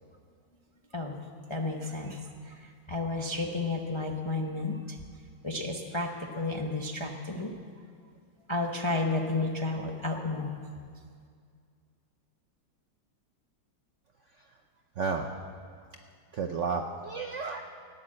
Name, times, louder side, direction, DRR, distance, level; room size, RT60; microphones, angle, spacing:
voice 1, 1.5-5.0 5.4-7.5 8.5-10.5, left 2 dB, 50° left, 1 dB, 0.3 m, -32 dB
voice 2, 15.0-15.3 16.3-17.6, right 5 dB, 70° right, 3 dB, 0.7 m, -32 dB
16.0 x 9.8 x 7.6 m, 2.2 s
omnidirectional pair, 2.1 m